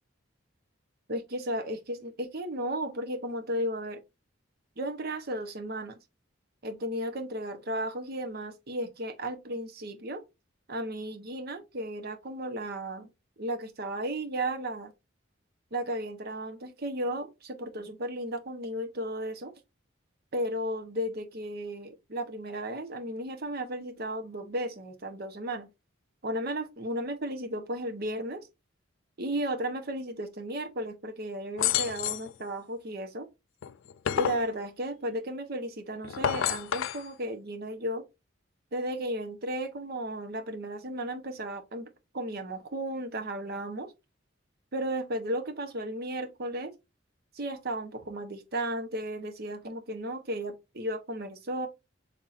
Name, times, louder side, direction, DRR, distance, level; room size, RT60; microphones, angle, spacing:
voice 1, 1.1-4.0 4.8-6.0 6.6-10.2 10.7-13.1 13.4-14.9 15.7-19.5 20.3-25.7 26.2-28.5 29.2-33.3 34.1-38.0 38.7-41.9 42.1-43.9 44.7-46.7 47.3-51.7, right 1 dB, 50° right, 0.9 m, -34 dB
sound 1, 31.6-32.3 33.6-34.5 36.0-37.0, left 10 dB, 75° left, 0.3 m, -29 dB
5.7 x 3.5 x 2.5 m
head